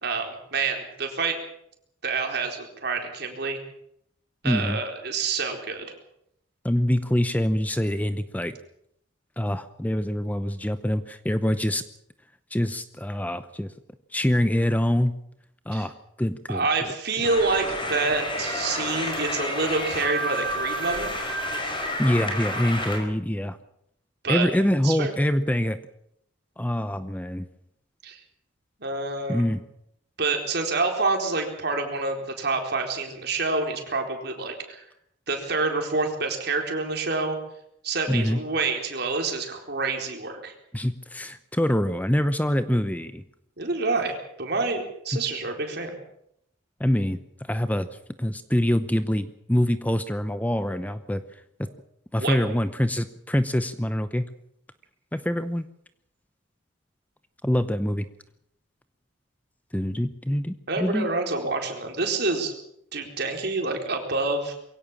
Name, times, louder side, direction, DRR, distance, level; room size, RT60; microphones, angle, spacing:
voice 1, 0.0-1.4 2.0-3.6 4.4-5.9 15.7-15.9 16.5-21.1 24.2-24.5 24.8-25.1 28.0-28.2 28.8-29.5 30.2-34.8 35.3-37.4 37.8-40.5 43.6-46.0 52.2-52.4 60.7-62.5 62.9-64.6, right 3 dB, 55° right, 3 dB, 4.2 m, -27 dB
voice 2, 4.4-4.8 6.6-8.6 9.4-11.8 12.5-13.7 14.1-15.1 15.7-15.9 16.2-16.7 22.0-23.6 24.3-25.8 26.6-27.5 29.3-29.6 38.1-38.4 40.7-43.2 45.1-45.2 46.8-47.2 47.5-47.9 48.2-51.2 51.6-51.7 52.1-54.3 55.1-55.6 57.4-58.1 59.7-61.1, equal, 10° left, 11 dB, 0.7 m, -25 dB
sound 1, 17.2-23.0, equal, 25° left, 5.2 m, -30 dB
22.5 x 17.0 x 7.4 m, 0.75 s
head